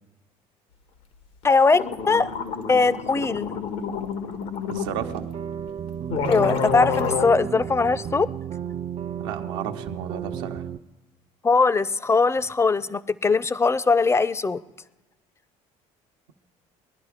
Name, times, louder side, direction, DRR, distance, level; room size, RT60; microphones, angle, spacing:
sound 1, 1.4-1.5 1.7-4.9 5.7-5.8 6.1-7.3, left 6 dB, 90° left, 1.4 m, -29 dB
voice 1, 1.4-2.3 2.7-3.6 6.3-8.3 11.4-14.6, left 4 dB, 20° left, 18 dB, 0.5 m, -21 dB
voice 2, 4.7-5.3 9.2-10.6, right 8 dB, 90° right, 5 dB, 0.9 m, -33 dB
sound 2, 4.9-10.8, right 8 dB, 45° right, 0.5 m, -33 dB
20.5 x 11.0 x 4.9 m, 1.1 s
supercardioid pair, 80°, 15 cm